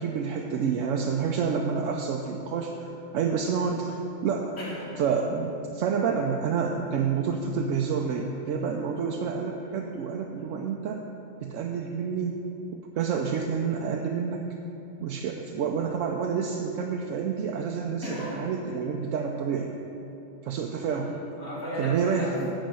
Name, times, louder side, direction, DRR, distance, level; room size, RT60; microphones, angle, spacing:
voice 1, 0.0-2.9 3.1-4.5 5.0-11.0 11.4-12.4 12.7-14.5 15.0-19.7 20.4-21.1 21.8-22.5, right 6 dB, 70° right, 1 dB, 0.9 m, -28 dB
voice 2, 4.6-4.9 18.0-18.4 20.9-22.3, equal, 80° left, -8 dB, 3.1 m, -35 dB
10.5 x 4.4 x 7.6 m, 2.9 s
omnidirectional pair, 1.4 m